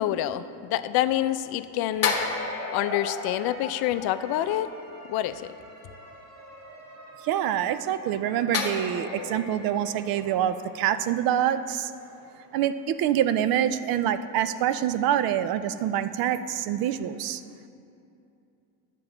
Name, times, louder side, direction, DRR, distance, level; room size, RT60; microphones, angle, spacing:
voice 1, 0.0-2.2 2.7-4.7 5.1-5.5, left 13 dB, 60° left, 12 dB, 0.5 m, -27 dB
sound 1, 1.9-13.7, right 1 dB, 35° right, 1.6 m, -49 dB
sound 2, 2.0-4.7 8.5-11.8 12.1-12.2, left 5 dB, 35° left, 1.0 m, -33 dB
voice 2, 7.2-11.9 12.5-17.4, right 10 dB, 55° right, 12 dB, 0.5 m, -26 dB
10.5 x 7.5 x 3.9 m, 2.7 s
cardioid pair, 115°, 43 cm